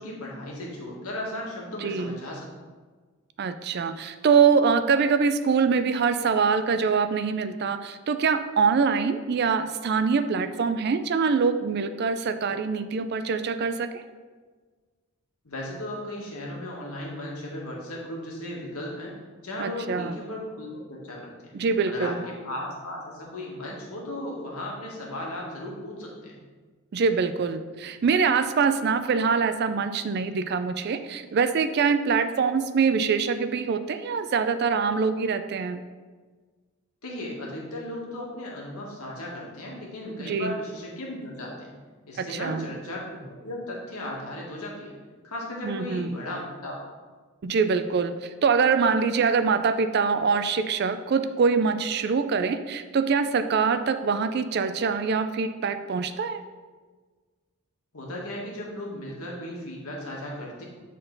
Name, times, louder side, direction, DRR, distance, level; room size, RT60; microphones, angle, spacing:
voice 1, 0.0-2.5 15.4-19.2 19.4-21.5 21.8-26.4 37.0-41.7 42.1-44.9 45.2-46.8 57.9-60.6, left 1 dB, 85° left, -3 dB, 1.6 m, -36 dB
voice 2, 1.8-2.1 3.4-13.9 19.6-20.2 21.5-22.2 26.9-35.8 40.2-40.6 42.2-42.7 45.6-46.2 47.4-56.4, right 5 dB, 45° right, 10 dB, 0.3 m, -24 dB
7.9 x 3.8 x 3.9 m, 1.4 s
head